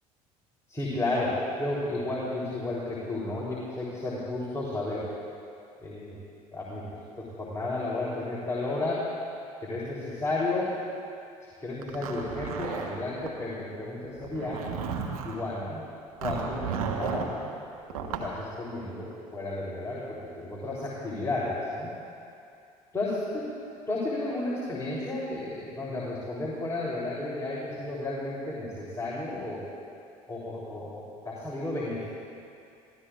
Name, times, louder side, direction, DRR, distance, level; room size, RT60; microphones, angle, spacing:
voice 1, 0.7-5.1 5.8-6.2 6.5-6.9 7.1-9.0 9.6-10.7 11.6-14.6 15.2-15.8 16.2-17.5 17.9-21.9 22.9-23.5 23.9-29.6 30.3-32.0, left 2 dB, 15° left, -7 dB, 3.4 m, -32 dB
Zipper (clothing), 11.8-13.3 14.2-15.4 16.2-17.3 17.9-18.3, right 6 dB, 75° right, 1.2 m, -33 dB
26.0 x 16.5 x 2.4 m, 2.6 s
figure-of-eight pair, 60°, 19 cm